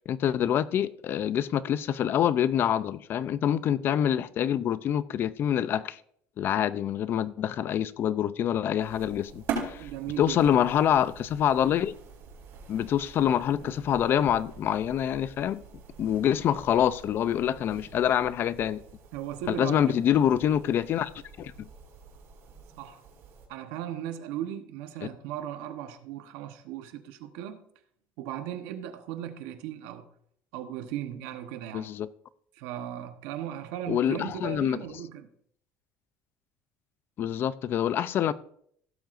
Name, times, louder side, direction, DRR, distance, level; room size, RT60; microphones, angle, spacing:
voice 1, 0.1-6.0 6.4-9.9 10.2-11.9 12.7-15.6 16.0-18.8 19.5-21.1 21.4-21.7 31.7-32.1 33.9-34.8 37.2-38.3, left 10 dB, 45° left, 0.5 m, -26 dB
sound 1, 8.8-23.5, right 5 dB, 60° right, 4.4 m, -43 dB
voice 2, 9.8-10.4 19.1-20.0 22.8-23.0 23.5-27.6 28.2-30.1 30.5-31.9 32.5-35.3, right 11 dB, 90° right, 1.1 m, -37 dB
16.5 x 7.7 x 2.6 m
cardioid pair, 140°, 5 cm